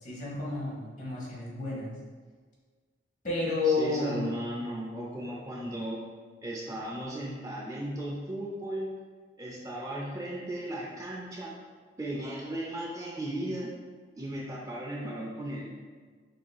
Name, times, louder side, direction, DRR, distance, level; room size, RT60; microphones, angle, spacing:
voice 1, 0.0-2.0 3.2-4.3, left 3 dB, 45° left, -5 dB, 1.2 m, -30 dB
voice 2, 3.6-6.0 6.4-8.9 9.4-11.5 12.0-13.7 14.2-15.8, right 1 dB, 20° right, -4 dB, 0.5 m, -36 dB
6.4 x 2.8 x 2.3 m, 1.5 s
head